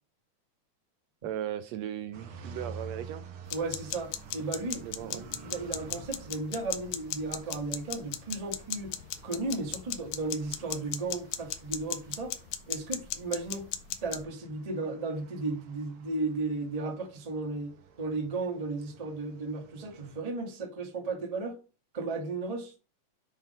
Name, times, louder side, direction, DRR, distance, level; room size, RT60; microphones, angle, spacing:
voice 1, 1.2-3.3 4.8-5.3, right 10 dB, 80° right, 1.6 m, -37 dB
sound 1, 2.1-20.2, right 5 dB, 60° right, 1.5 m, -50 dB
sound 2, 3.4-14.2, left 12 dB, 90° left, 2.1 m, -38 dB
voice 2, 3.5-8.9 9.2-12.3 12.7-13.7 14.0-17.7 18.0-21.6 21.9-22.7, right 3 dB, 30° right, 0.6 m, -35 dB
7.3 x 3.8 x 5.3 m
omnidirectional pair, 3.3 m